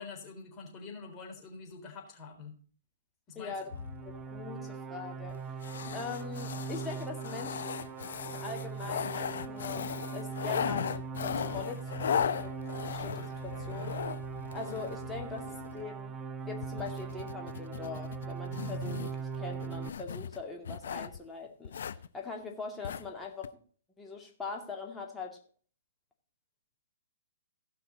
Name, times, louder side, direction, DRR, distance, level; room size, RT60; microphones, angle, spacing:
voice 1, 0.0-2.6 3.3-3.5, left 4 dB, 25° left, 0 dB, 3.7 m, -45 dB
voice 2, 3.3-3.7 4.0-5.6 5.9-7.6 8.3-12.5 12.9-14.0 14.5-16.2 16.4-23.5 24.0-25.4, left 4 dB, 10° left, -1 dB, 2.3 m, -42 dB
sound 1, 3.6-19.9, right 5 dB, 15° right, 0.8 m, -40 dB
sound 2, 3.7-4.4 5.3-5.4 5.6-15.9 16.6-21.2 21.6-22.1 22.8-23.1 23.4-23.5, left 8 dB, 65° left, 0.7 m, -37 dB
17.0 x 5.8 x 4.0 m, 0.43 s
hypercardioid pair, 130°, 0 cm